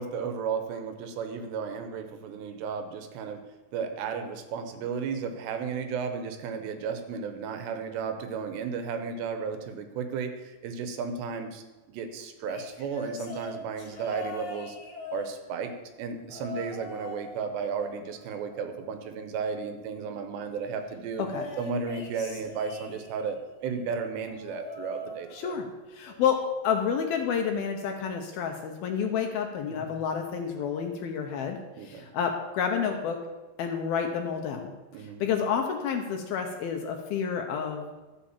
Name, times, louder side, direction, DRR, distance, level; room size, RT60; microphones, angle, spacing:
voice 1, 0.0-3.4 3.7-14.8 15.1-15.7 16.0-21.2 21.6-25.5 29.7-29.9 31.8-32.1 34.9-35.2, right 5 dB, 75° right, 7 dB, 3.1 m, -34 dB
sound 1, 12.4-15.8 16.3-17.3 17.6-19.1 21.2-23.4 24.2-25.7 26.1-26.4 27.6-27.7, left 1 dB, 50° left, 1.7 m, -41 dB
voice 2, 21.2-21.5 25.3-33.2 33.6-34.7 35.0-37.9, left 7 dB, 70° left, 4 dB, 2.6 m, -29 dB
13.0 x 7.8 x 7.3 m, 1.1 s
omnidirectional pair, 5.1 m